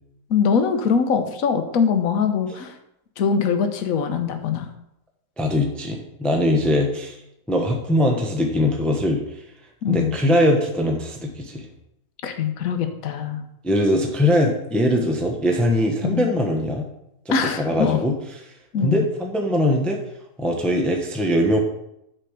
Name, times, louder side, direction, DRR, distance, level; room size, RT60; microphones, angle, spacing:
voice 1, 0.3-2.7 3.2-4.7 9.8-10.1 12.2-13.4 16.0-16.3 17.3-18.0 18.7-19.0, left 6 dB, 65° left, 7 dB, 1.3 m, -22 dB
voice 2, 5.4-7.2 7.5-9.2 9.9-11.7 13.6-16.8 17.3-18.1 18.8-20.0 20.4-21.6, left 1 dB, ahead, 2 dB, 0.8 m, -21 dB
6.7 x 5.2 x 6.5 m, 0.82 s
omnidirectional pair, 1.7 m